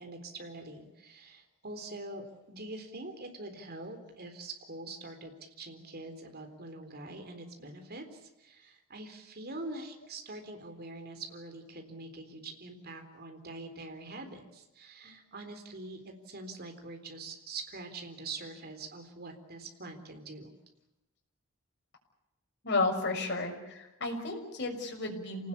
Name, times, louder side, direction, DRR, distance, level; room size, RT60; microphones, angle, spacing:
voice 1, 0.0-20.5, right 2 dB, 50° right, 6 dB, 3.9 m, -44 dB
voice 2, 22.6-25.5, left 3 dB, 55° left, 2 dB, 6.4 m, -32 dB
28.0 x 19.0 x 8.6 m, 0.97 s
head